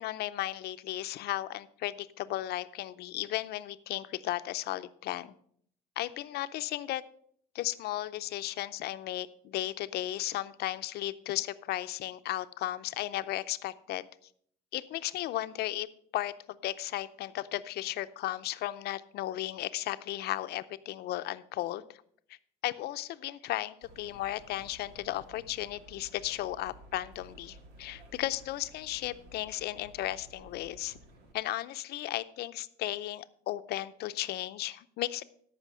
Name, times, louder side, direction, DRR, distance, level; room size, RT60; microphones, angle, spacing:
voice 1, 0.0-5.3 6.0-7.0 7.5-14.0 14.7-15.9 16.1-21.9 22.6-31.0 31.3-35.2, left 15 dB, 75° left, 13 dB, 0.6 m, -35 dB
sound 1, 23.8-31.3, right 1 dB, 85° right, 1.9 m, -54 dB
13.5 x 5.7 x 5.5 m, 0.64 s
cardioid pair, 110°, 17 cm